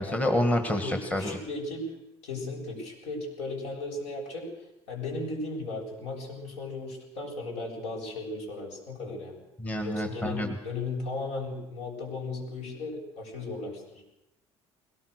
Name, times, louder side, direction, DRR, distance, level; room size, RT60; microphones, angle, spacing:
voice 1, 0.0-1.4 9.6-10.5, left 1 dB, 15° left, 4 dB, 1.6 m, -28 dB
voice 2, 0.6-1.9 2.2-4.5 4.9-9.4 9.8-14.0, left 2 dB, 75° left, 0 dB, 7.7 m, -36 dB
21.5 x 18.0 x 6.6 m, 0.89 s
cardioid pair, 170°, 11 cm